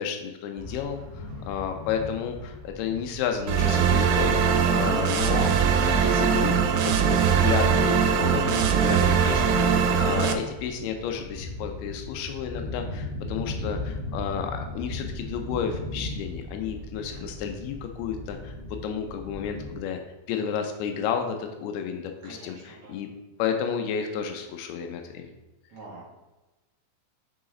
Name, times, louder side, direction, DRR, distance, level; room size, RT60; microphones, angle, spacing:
voice 1, 0.0-18.5 18.8-20.0 20.3-23.1 23.4-25.3, left 7 dB, 85° left, 5 dB, 2.2 m, -32 dB
sound 1, 0.6-19.8, left 2 dB, 45° right, 0.8 m, -38 dB
sound 2, 3.5-10.3, right 7 dB, 85° right, 3.2 m, -21 dB
voice 2, 4.5-4.9 16.9-17.3 22.2-23.0 25.7-26.1, right 2 dB, 60° right, -5 dB, 1.6 m, -43 dB
10.5 x 4.0 x 3.8 m, 1.1 s
omnidirectional pair, 5.3 m